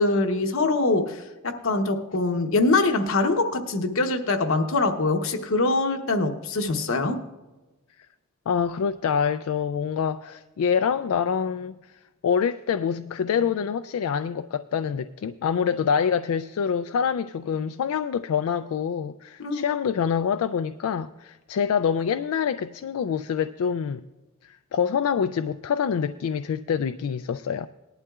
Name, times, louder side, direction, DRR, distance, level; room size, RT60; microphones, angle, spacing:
voice 1, 0.0-7.2 19.4-19.6, left 3 dB, 65° left, 0.9 m, -23 dB
voice 2, 8.5-11.8 12.2-24.0 24.4-27.7, left 7 dB, 85° left, 0.3 m, -26 dB
18.5 x 11.5 x 2.4 m
head